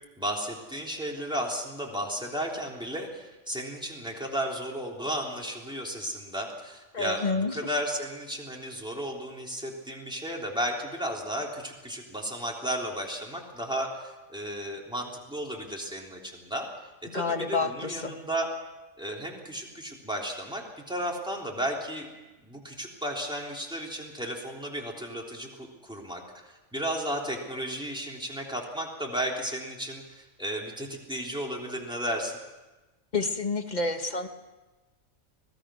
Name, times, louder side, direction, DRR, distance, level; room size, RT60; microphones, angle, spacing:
voice 1, 0.2-7.2 7.5-16.7 17.0-18.5 19.0-22.1 22.4-32.3, equal, 5° right, -2 dB, 3.5 m, -34 dB
voice 2, 6.9-7.7 17.1-18.1 33.1-34.3, left 3 dB, 30° left, 7 dB, 1.5 m, -29 dB
25.5 x 18.5 x 6.4 m, 1.1 s
omnidirectional pair, 1.5 m